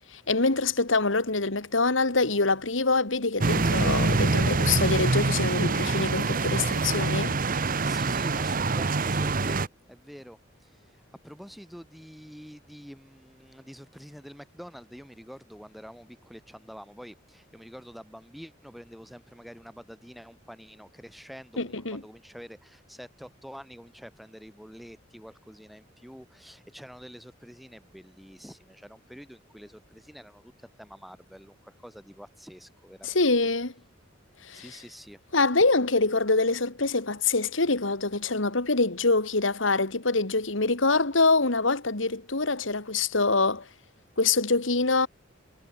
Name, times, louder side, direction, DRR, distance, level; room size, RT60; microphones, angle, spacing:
voice 1, 0.1-7.3 21.6-22.0 33.0-33.7 34.5-34.6 35.3-43.6 44.2-45.1, left 3 dB, 85° left, 2.4 m, -25 dB
sound 1, 3.4-9.7, right 3 dB, 45° right, 1.1 m, -25 dB
voice 2, 7.8-33.5 34.5-35.2, equal, ahead, 5.2 m, -47 dB
head